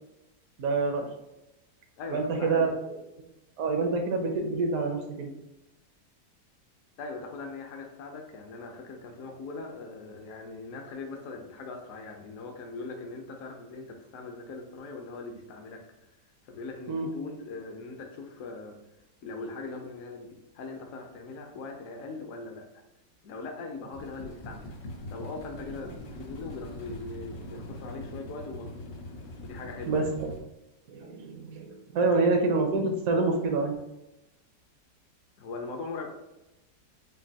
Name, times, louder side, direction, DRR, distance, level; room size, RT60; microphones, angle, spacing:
voice 1, 0.6-1.1 2.1-2.7 3.6-5.3 16.9-17.1 29.9-30.3 30.9-33.8, right 3 dB, 65° right, 3 dB, 1.1 m, -27 dB
voice 2, 2.0-2.7 7.0-15.8 16.4-18.8 19.2-22.8 23.2-24.7 25.1-28.9 29.4-30.1 32.0-32.3 35.4-36.1, left 3 dB, 60° left, 2 dB, 1.0 m, -40 dB
sound 1, 23.9-30.4, left 1 dB, 90° left, 1.5 m, -42 dB
5.2 x 2.6 x 2.8 m, 0.94 s
omnidirectional pair, 1.8 m